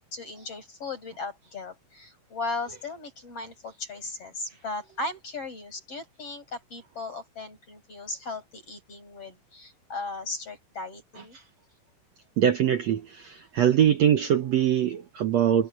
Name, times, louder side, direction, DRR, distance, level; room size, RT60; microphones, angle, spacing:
voice 1, 0.1-11.4, left 3 dB, 40° left, 7.1 m, -37 dB
voice 2, 12.4-15.7, right 9 dB, 70° right, 1.6 m, -23 dB
omnidirectional pair, 4.3 m